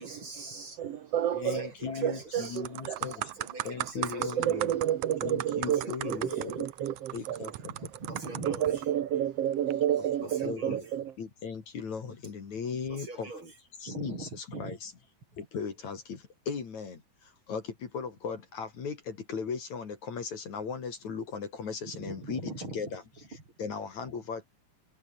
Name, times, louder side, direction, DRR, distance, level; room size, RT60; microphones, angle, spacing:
voice 1, 0.0-0.8 1.5-2.6 2.9-4.5 5.6-6.4 7.6-8.8 10.2-10.9 12.9-13.5 13.9-14.8 21.9-22.8, right 3 dB, 30° right, 6.2 m, -42 dB
voice 2, 0.5-1.7 2.0-3.1 4.2-7.5 8.4-11.1, right 10 dB, 60° right, 1.7 m, -30 dB
voice 3, 1.3-3.3 3.6-4.8 5.2-6.7 7.1-7.7 10.2-10.8 11.2-13.3 13.8-14.9 15.4-23.0 23.3-24.5, left 5 dB, 50° left, 4.1 m, -37 dB
sound 1, 1.8-2.1 2.4-8.8 9.5-9.7, right 16 dB, 90° right, 1.6 m, -38 dB
omnidirectional pair, 4.3 m